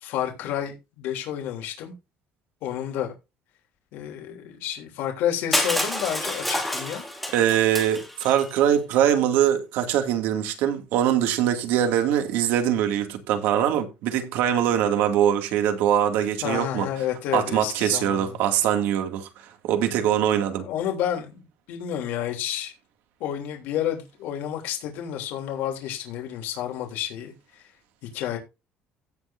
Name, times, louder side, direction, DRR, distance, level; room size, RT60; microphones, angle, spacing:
voice 1, 0.0-1.9 2.6-3.1 3.9-7.0 16.4-18.4 20.6-22.7 23.2-27.7 28.1-28.4, left 10 dB, 75° left, 3.3 m, -30 dB
Crushing, 5.5-8.5, left 1 dB, ahead, 2.6 m, -28 dB
voice 2, 7.3-16.9 17.3-20.7, right 10 dB, 80° right, 2.5 m, -23 dB
16.5 x 6.7 x 2.7 m
cardioid pair, 180°, 3 cm